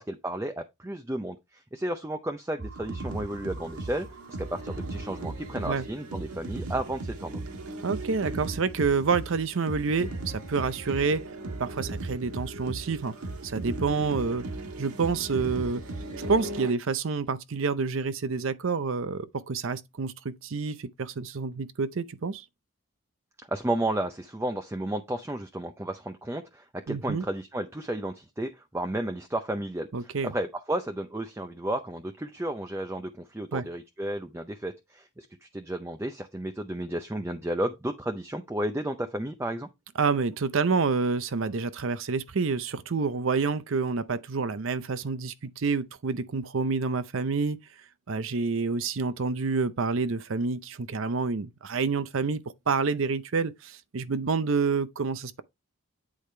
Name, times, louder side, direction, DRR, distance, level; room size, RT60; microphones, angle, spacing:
voice 1, 0.0-4.1 4.4-7.4 23.5-35.3 35.5-39.7, right 1 dB, 10° right, 0.5 m, -33 dB
sound 1, 2.6-16.7, right 2 dB, 90° right, 1.5 m, -37 dB
voice 2, 7.8-11.2 11.6-13.1 13.4-14.4 14.8-15.8 16.3-22.4 26.9-27.2 29.9-30.3 33.5-33.6 40.0-47.6 48.1-52.4 52.7-55.4, right 4 dB, 60° right, 0.6 m, -28 dB
8.5 x 4.8 x 3.2 m
head